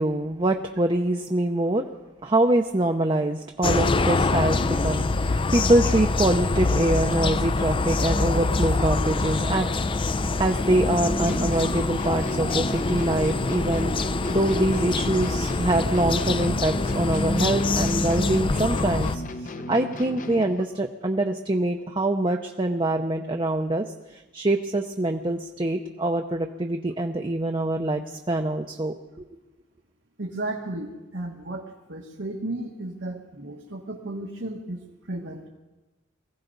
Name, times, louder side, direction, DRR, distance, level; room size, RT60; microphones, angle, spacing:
voice 1, 0.0-1.9 2.2-9.7 10.1-19.2 19.7-23.8 24.1-28.9, right 1 dB, 25° right, 4 dB, 0.7 m, -24 dB
sound 1, 3.6-19.2, left 3 dB, 25° left, 0.5 m, -25 dB
sound 2, 11.2-20.7, left 1 dB, 45° left, 0.8 m, -35 dB
voice 2, 30.2-34.8 35.1-35.5, right 2 dB, 85° right, -1 dB, 1.7 m, -34 dB
22.0 x 16.0 x 4.0 m, 1.1 s
head